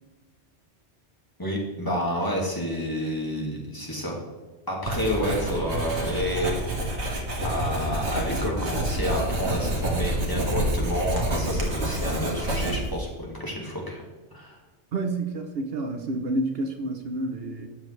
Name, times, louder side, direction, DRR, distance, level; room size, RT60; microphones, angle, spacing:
voice 1, 1.4-4.2 4.7-6.6 7.4-14.0 14.3-14.6, equal, 20° left, -2 dB, 1.9 m, -29 dB
Writing, 4.9-13.1, right 1 dB, 75° right, 1.9 m, -28 dB
voice 2, 14.9-17.7, right 2 dB, 60° right, 6 dB, 1.0 m, -29 dB
11.5 x 7.3 x 3.3 m, 1.2 s
omnidirectional pair, 1.2 m